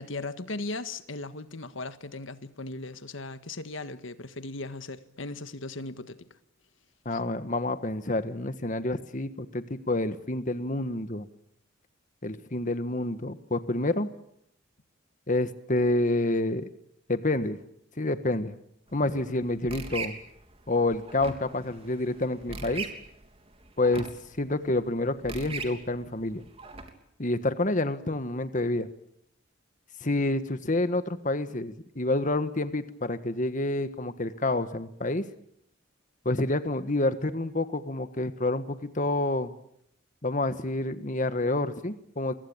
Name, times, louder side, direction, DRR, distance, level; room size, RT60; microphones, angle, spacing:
voice 1, 0.0-6.2 7.1-7.2, left 2 dB, 75° left, 1.6 m, -37 dB
voice 2, 7.0-11.3 12.2-14.1 15.3-16.7 17.1-17.6 18.0-18.5 18.9-20.2 20.7-22.9 23.8-24.1 24.4-26.4 27.2-28.9 30.0-35.2 36.2-39.5 40.2-42.3, left 2 dB, 40° left, 1.5 m, -28 dB
sound 1, 18.9-26.9, right 4 dB, 30° right, 3.3 m, -42 dB
28.5 x 23.0 x 8.8 m
head